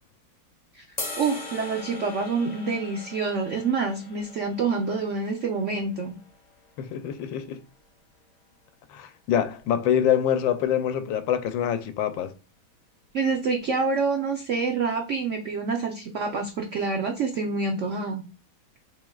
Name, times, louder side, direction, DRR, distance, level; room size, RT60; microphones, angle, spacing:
sound 1, 1.0-7.2, left 3 dB, 25° left, 1.0 m, -41 dB
voice 1, 1.2-6.1 13.1-18.2, right 4 dB, 75° right, 0.6 m, -27 dB
voice 2, 6.8-7.6 8.9-12.3, left 9 dB, 80° left, 1.3 m, -25 dB
6.2 x 3.6 x 2.3 m
omnidirectional pair, 2.2 m